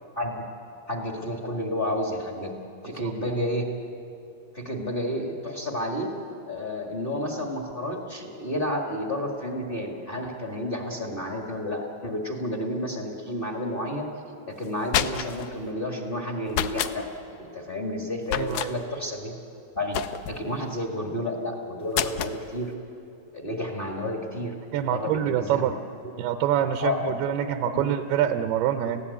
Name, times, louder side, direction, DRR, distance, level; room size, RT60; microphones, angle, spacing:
voice 1, 0.9-2.5 2.8-3.7 4.5-6.1 6.5-14.1 14.5-17.0 17.4-19.4 19.7-22.7 23.3-24.5 24.9-25.7 26.0-26.2 26.8-27.1 27.7-27.9 28.8-29.0, left 1 dB, 40° left, 1 dB, 0.7 m, -31 dB
sound 1, 14.6-15.5 16.5-17.0 18.3-18.7 19.9-20.5 21.9-22.4, left 10 dB, 80° left, 1.9 m, -28 dB
voice 2, 18.3-18.7 24.7-25.7 26.2-29.0, right 10 dB, 80° right, 8 dB, 2.6 m, -25 dB
30.0 x 16.0 x 8.5 m, 2.7 s
omnidirectional pair, 4.5 m